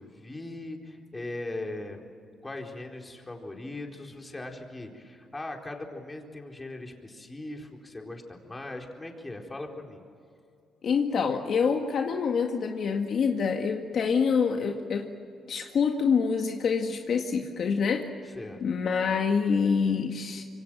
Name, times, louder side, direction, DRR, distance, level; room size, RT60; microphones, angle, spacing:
voice 1, 0.0-2.1 2.4-10.0 18.2-18.6, left 2 dB, 20° left, 2 dB, 4.3 m, -39 dB
voice 2, 10.8-15.1 15.5-18.1 18.6-20.4, left 6 dB, 60° left, 3 dB, 1.9 m, -26 dB
26.5 x 24.5 x 7.7 m, 2.4 s
cardioid pair, 90°, 0 cm